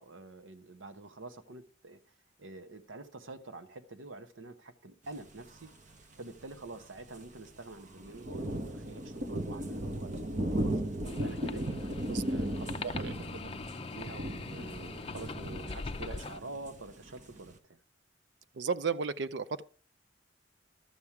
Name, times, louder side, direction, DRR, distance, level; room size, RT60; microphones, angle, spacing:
voice 1, 0.0-2.0 2.4-5.7 6.2-10.8 11.1-11.8 12.3-13.4 13.9-17.8, right 2 dB, 90° right, 1.0 m, -47 dB
sound 1, 5.9-6.0 6.2-6.3 6.7-6.8 7.1-7.5 7.9-17.6, right 1 dB, 40° right, 1.0 m, -36 dB
sound 2, 11.0-16.4, left 4 dB, 30° left, 0.5 m, -42 dB
voice 2, 12.8-13.1 18.5-19.6, right 5 dB, 65° right, 0.5 m, -33 dB
12.0 x 7.3 x 4.7 m
head